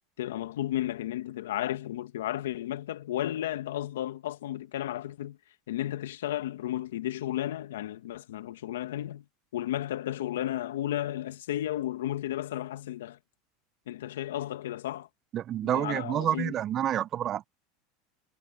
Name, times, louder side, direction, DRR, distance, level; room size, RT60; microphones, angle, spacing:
voice 1, 0.2-5.4 5.7-9.2 9.5-13.2 13.9-15.1 15.6-16.5, left 13 dB, 85° left, 1.7 m, -33 dB
voice 2, 15.3-17.5, right 11 dB, 40° right, 0.6 m, -29 dB
supercardioid pair, 110°, 0 cm